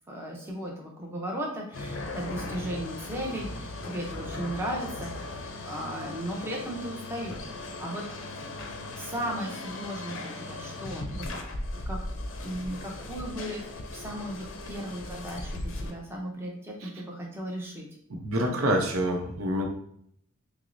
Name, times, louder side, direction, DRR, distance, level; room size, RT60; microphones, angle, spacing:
voice 1, 0.1-7.5 7.8-8.1 9.0-11.2 11.9-12.0 12.4-13.6 13.9-17.9 18.4-18.9, right 1 dB, 10° right, -2 dB, 0.6 m, -36 dB
sound 1, 1.7-15.9, left 2 dB, 60° left, 0.5 m, -38 dB
voice 2, 18.1-19.6, right 1 dB, 80° right, 1 dB, 0.7 m, -27 dB
5.9 x 2.0 x 2.6 m, 0.68 s
head